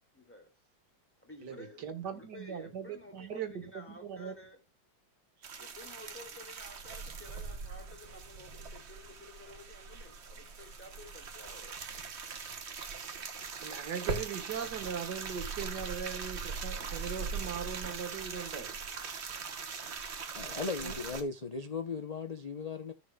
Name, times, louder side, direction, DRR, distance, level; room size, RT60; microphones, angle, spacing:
voice 1, 0.1-0.5 1.2-4.6 5.6-11.7, left 2 dB, 5° left, 2.6 m, -52 dB
voice 2, 1.4-4.3 13.6-18.8 20.4-21.0, right 7 dB, 65° right, 2.0 m, -40 dB
sound 1, 5.4-21.2, right 5 dB, 40° right, 1.3 m, -41 dB
voice 3, 20.3-22.9, left 4 dB, 60° left, 0.4 m, -37 dB
15.5 x 6.3 x 2.3 m
omnidirectional pair, 1.9 m